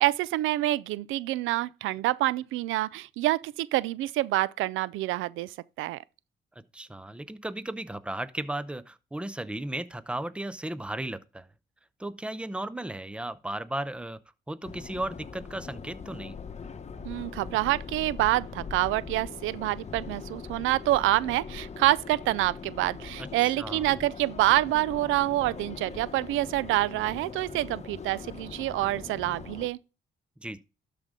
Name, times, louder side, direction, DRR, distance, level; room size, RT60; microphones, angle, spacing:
voice 1, 0.0-6.0 17.0-29.8, right 16 dB, 90° right, 0.4 m, -27 dB
voice 2, 6.7-11.5 12.0-14.2 14.5-16.4 23.4-23.9 30.4-30.6, right 1 dB, 5° right, 0.6 m, -35 dB
Subway metro underground, 14.7-29.7, left 5 dB, 35° left, 1.1 m, -41 dB
12.5 x 5.1 x 3.7 m
cardioid pair, 90°, 20 cm